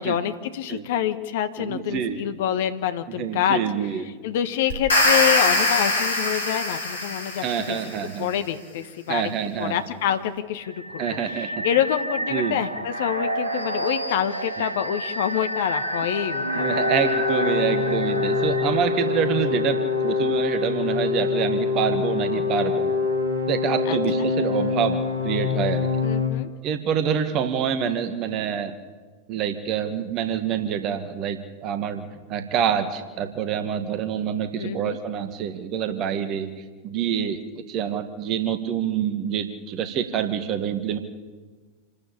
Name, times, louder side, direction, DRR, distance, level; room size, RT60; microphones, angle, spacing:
voice 1, 0.0-3.6 4.2-7.8 8.2-9.3 9.6-16.8 23.9-24.0 26.0-26.5 34.6-35.0, left 10 dB, 55° left, 10 dB, 1.5 m, -26 dB
voice 2, 1.6-2.2 3.1-4.1 7.4-8.3 9.1-9.8 11.0-11.6 12.3-12.6 16.6-23.0 23.5-25.0 25.2-25.9 26.6-28.7 29.3-36.5 36.8-41.0, right 8 dB, 35° right, 9 dB, 1.7 m, -26 dB
sound 1, 4.7-7.9, left 2 dB, 70° left, 4.3 m, -22 dB
sound 2, 10.6-21.4, right 1 dB, 80° right, 1.8 m, -30 dB
sound 3, 16.4-26.3, left 5 dB, 65° right, 5.9 m, -25 dB
27.5 x 12.5 x 8.7 m, 1.4 s
figure-of-eight pair, 90°, 0 cm